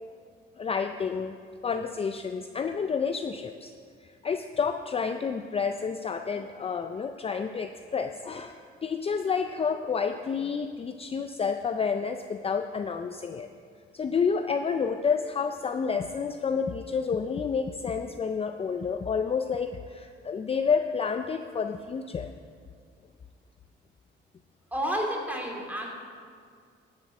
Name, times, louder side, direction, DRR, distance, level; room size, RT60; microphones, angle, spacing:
voice 1, 0.6-1.4 1.6-3.7 4.0-13.5 13.9-22.3, left 6 dB, 30° left, 7 dB, 0.5 m, -29 dB
voice 2, 24.7-25.9, equal, 10° right, -1 dB, 2.6 m, -30 dB
12.0 x 7.6 x 5.9 m, 2.1 s
cardioid pair, 90°, 20 cm